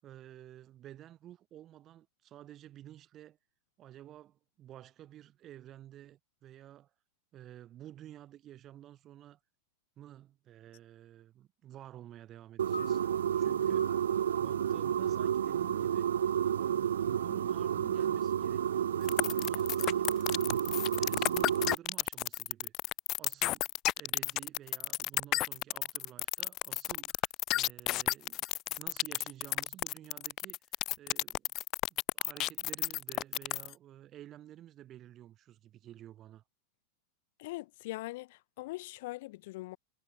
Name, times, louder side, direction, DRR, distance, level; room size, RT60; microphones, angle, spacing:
voice 1, 0.0-3.4 3.8-6.9 7.3-9.4 10.0-14.0 14.3-16.1 16.6-20.5 21.0-22.7 23.2-23.7 24.0-27.3 27.5-30.6 31.0-31.5 31.9-36.4, right 12 dB, 35° right, 5.7 m, -52 dB
sound 1, 12.6-21.7, right 9 dB, 65° right, 0.5 m, -31 dB
sound 2, 12.7-19.2, left 1 dB, 90° left, 2.3 m, -51 dB
sound 3, 19.1-33.7, left 16 dB, 40° left, 1.3 m, -32 dB
voice 2, 37.4-39.8, left 20 dB, 55° left, 4.0 m, -41 dB
figure-of-eight pair, 90°, 0 cm